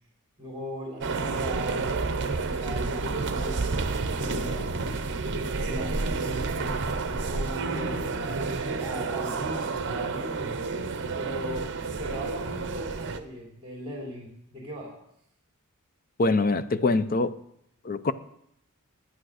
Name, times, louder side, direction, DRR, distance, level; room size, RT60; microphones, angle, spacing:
voice 1, 0.4-3.6 4.2-5.1 5.6-8.4 8.8-10.6 11.1-11.7 12.0-14.9, equal, 25° right, 3.3 m, -39 dB
sound 1, 1.0-13.2, right 4 dB, 55° right, 0.8 m, -30 dB
voice 2, 16.2-17.4 17.8-18.1, left 3 dB, 40° left, 0.6 m, -24 dB
11.5 x 9.7 x 6.4 m
head